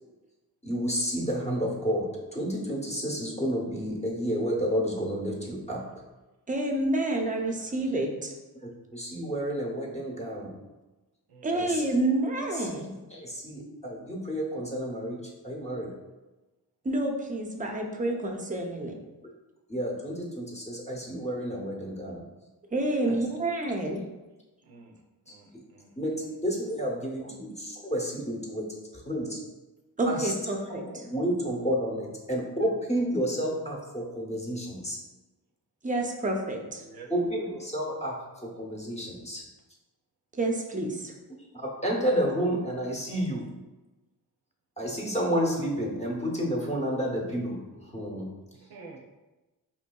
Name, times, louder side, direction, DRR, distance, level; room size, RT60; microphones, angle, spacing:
voice 1, 0.6-5.8 8.5-10.6 11.5-11.8 12.5-12.7 13.1-15.9 17.8-18.2 19.7-22.2 23.1-23.2 25.3-25.4 26.0-28.7 28.9-29.4 30.0-35.0 37.1-38.2 38.4-39.4 41.5-43.5 44.8-47.6 47.9-48.3, equal, 15° left, -3 dB, 0.8 m, -31 dB
voice 2, 6.5-8.3 11.4-12.9 16.8-18.9 22.7-24.0 30.0-30.8 35.8-36.8 40.4-41.1, right 2 dB, 20° right, 2 dB, 0.5 m, -28 dB
voice 3, 7.3-7.9 11.3-11.8 22.9-23.2 24.6-25.0 25.3-26.0 36.8-37.1 48.6-49.0, right 4 dB, 75° right, 1 dB, 0.6 m, -50 dB
4.3 x 2.6 x 2.2 m, 1.1 s
cardioid pair, 75°, 38 cm